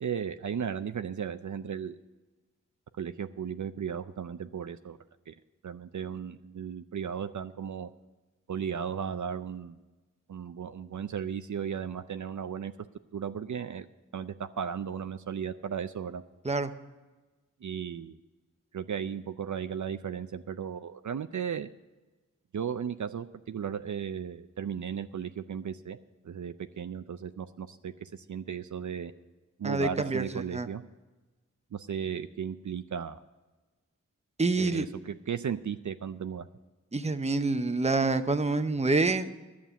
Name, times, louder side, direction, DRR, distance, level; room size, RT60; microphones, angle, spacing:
voice 1, 0.0-2.0 3.0-5.0 5.3-5.4 5.6-7.9 8.5-9.8 10.3-12.7 13.1-13.9 14.1-16.2 17.6-18.2 18.7-21.7 22.5-26.0 26.2-29.1 29.6-30.8 31.7-33.2 34.6-36.4, right 7 dB, 65° right, 10 dB, 0.5 m, -35 dB
voice 2, 29.6-30.7 34.4-34.8 36.9-39.3, right 3 dB, 20° right, 10 dB, 0.7 m, -27 dB
11.5 x 7.4 x 8.2 m, 1.2 s
wide cardioid pair, 50°, 32 cm